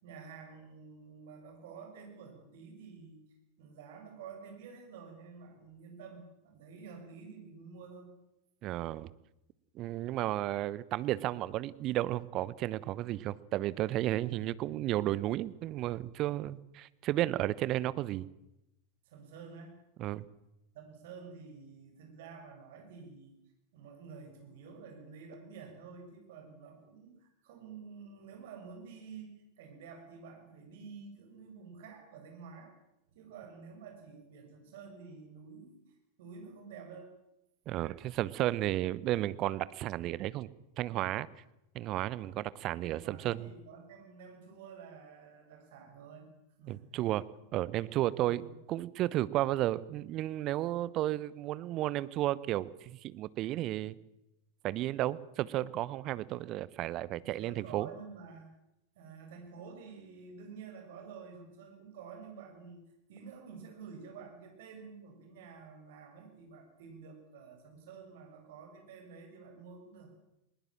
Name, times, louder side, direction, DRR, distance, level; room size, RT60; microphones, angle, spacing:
voice 1, 0.0-3.2 3.6-8.1 19.1-19.8 20.7-23.3 23.7-32.7 33.1-37.1 42.8-46.3 46.6-46.9 47.9-48.5 50.6-50.8 57.2-58.5 59.0-62.8 63.1-70.1, right 5 dB, 55° right, 3 dB, 6.9 m, -50 dB
voice 2, 8.6-9.1 9.7-18.3 20.0-20.3 37.7-40.5 40.8-41.3 41.7-43.4 46.7-47.2 47.5-48.4 48.7-54.0 54.6-57.9, right 15 dB, 35° right, 19 dB, 0.9 m, -33 dB
21.0 x 20.0 x 7.6 m, 0.88 s
figure-of-eight pair, 90°, 0 cm